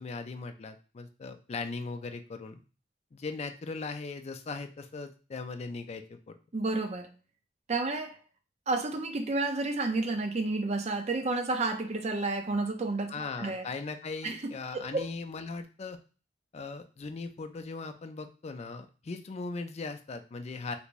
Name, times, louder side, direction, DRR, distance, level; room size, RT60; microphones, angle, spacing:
voice 1, 0.0-2.6 3.1-6.4 13.1-16.0 16.5-20.8, left 4 dB, 35° left, 0.4 m, -39 dB
voice 2, 6.5-7.1 7.7-8.2 8.7-13.7 14.2-15.0, right 3 dB, 40° right, 0.5 m, -31 dB
3.3 x 2.6 x 3.0 m
head